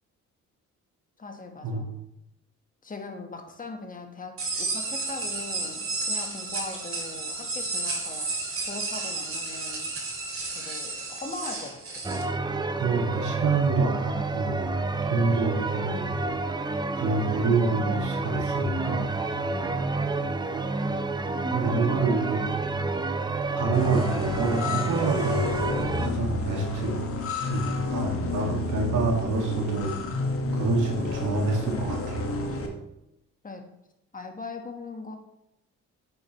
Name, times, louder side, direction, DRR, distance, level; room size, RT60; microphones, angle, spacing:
voice 1, 1.2-2.0 2.8-9.9 10.5-12.1 19.5-19.9 33.4-33.7 34.1-35.2, left 3 dB, 25° left, 5 dB, 1.3 m, -40 dB
sound 1, 4.4-12.2, right 3 dB, 45° right, 2.3 m, -32 dB
scifihalytys-scifi-alarm, 12.0-26.1, right 3 dB, 15° right, 0.5 m, -29 dB
voice 2, 12.7-14.6 15.1-16.1 16.9-19.1 21.5-22.5 23.6-25.6 26.0-27.0 27.4-29.9 30.5-32.3, right 3 dB, 75° right, 1 dB, 1.8 m, -27 dB
sound 2, 23.7-32.7, left 2 dB, 45° left, 1.5 m, -30 dB
9.0 x 6.6 x 3.0 m, 0.84 s
cardioid pair, 90°, 30 cm